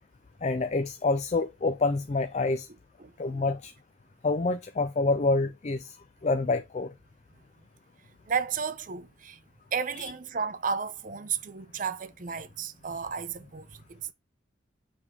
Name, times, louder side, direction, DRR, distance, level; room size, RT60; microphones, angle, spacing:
voice 1, 0.4-2.7 3.2-3.7 4.2-6.0 6.2-6.9 10.0-10.1, left 3 dB, 35° left, 0.4 m, -27 dB
voice 2, 3.0-3.4 8.3-9.4 9.7-14.1, right 6 dB, 45° right, 0.6 m, -33 dB
7.1 x 3.5 x 4.6 m
head